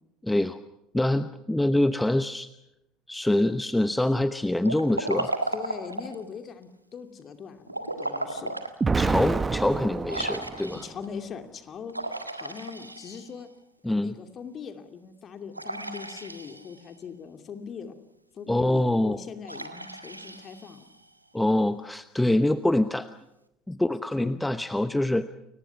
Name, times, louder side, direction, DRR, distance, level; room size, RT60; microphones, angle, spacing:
voice 1, 0.2-0.6 0.9-2.5 3.1-5.3 9.0-10.8 13.8-14.1 18.5-19.2 21.3-23.1 23.7-25.3, left 1 dB, 5° left, 13 dB, 0.9 m, -25 dB
Liquid, 4.6-6.2 7.7-8.8 9.2-9.3 10.1-11.1 11.9-13.5 15.5-16.9 19.4-21.1, right 2 dB, 90° right, 1.6 m, -34 dB
voice 2, 5.5-8.5 10.7-13.5 13.8-17.9 18.3-20.8 24.2-24.4, left 6 dB, 35° left, 8 dB, 2.6 m, -41 dB
Explosion, 8.8-10.9, right 4 dB, 20° right, 1.1 m, -27 dB
30.0 x 23.0 x 5.9 m, 0.88 s
figure-of-eight pair, 65°, 0 cm